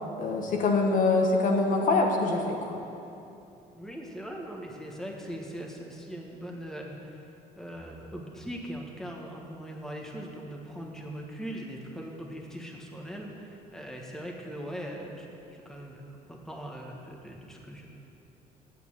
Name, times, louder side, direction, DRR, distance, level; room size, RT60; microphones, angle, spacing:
voice 1, 0.2-2.8, left 3 dB, 50° left, 1 dB, 1.3 m, -24 dB
voice 2, 3.7-17.9, equal, 5° left, -1 dB, 1.3 m, -40 dB
8.4 x 6.9 x 8.6 m, 2.9 s
cardioid pair, 110°, 17 cm